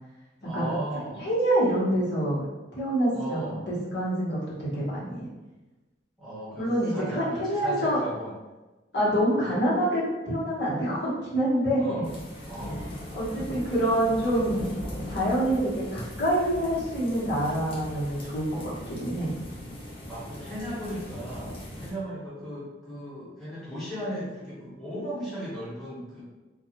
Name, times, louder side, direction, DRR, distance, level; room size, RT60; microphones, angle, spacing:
voice 1, 0.4-1.2 3.1-3.6 6.2-8.3 9.4-9.6 11.8-12.1 12.4-13.2 20.1-26.2, right 1 dB, ahead, -10 dB, 1.0 m, -36 dB
voice 2, 1.2-2.4 2.7-5.3 6.6-8.0 8.9-12.0 13.1-14.7 15.1-19.3, right 1 dB, 75° left, -7 dB, 1.0 m, -26 dB
sound 1, 12.0-21.9, equal, 30° left, 0.6 m, -39 dB
2.3 x 2.2 x 2.8 m, 1.1 s
head